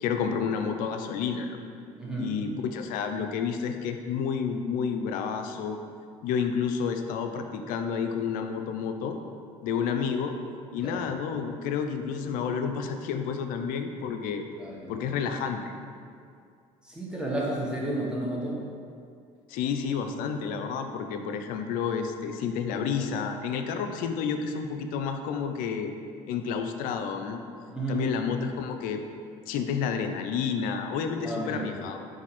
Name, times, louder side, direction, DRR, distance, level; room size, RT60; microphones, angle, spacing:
voice 1, 0.0-1.6 2.2-5.8 6.2-9.2 9.6-10.3 10.7-14.5 14.9-15.7 19.5-25.9 26.3-27.4 27.9-29.0 29.5-32.1, left 6 dB, 70° left, 6 dB, 0.4 m, -30 dB
voice 2, 2.0-2.3 10.7-11.0 14.6-14.9 16.8-18.6 27.7-28.1 31.2-31.7, right 1 dB, 5° right, -5 dB, 1.0 m, -32 dB
4.0 x 2.6 x 4.1 m, 2.3 s
supercardioid pair, 90°, 15 cm